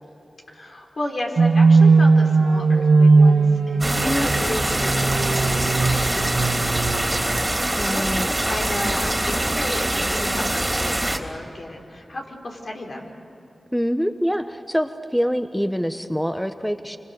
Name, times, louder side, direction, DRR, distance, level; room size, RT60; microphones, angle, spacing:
voice 1, 0.5-13.1, left 1 dB, 65° left, 1 dB, 4.2 m, -33 dB
sound 1, 1.4-7.6, right 4 dB, 80° right, 0.9 m, -18 dB
sound 2, 3.8-11.2, right 1 dB, 20° right, 3.2 m, -24 dB
voice 2, 7.8-8.3 13.7-17.0, equal, 5° left, 9 dB, 1.0 m, -25 dB
28.0 x 26.0 x 6.6 m, 3.0 s
cardioid pair, 50°, 0 cm